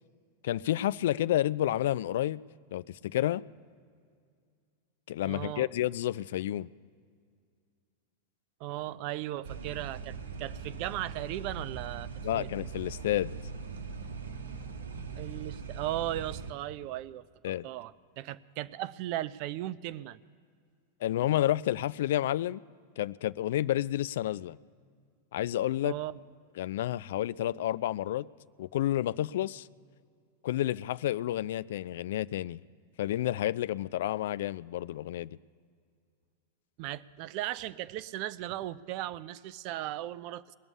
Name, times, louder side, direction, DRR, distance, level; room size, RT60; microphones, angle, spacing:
voice 1, 0.4-2.4 2.7-3.4 5.1-6.7 12.2-13.3 17.4-17.7 21.0-22.6 23.0-24.6 25.3-25.9 26.6-28.3 28.6-29.7 30.4-32.6 33.0-35.4, left 13 dB, 55° left, 0.3 m, -30 dB
voice 2, 5.2-5.7 8.6-12.5 15.1-20.2 25.8-26.2 36.8-40.5, right 14 dB, 45° right, 0.4 m, -37 dB
sound 1, 9.4-16.5, right 5 dB, 65° right, 0.9 m, -41 dB
20.5 x 6.9 x 9.8 m
figure-of-eight pair, 90°, 0 cm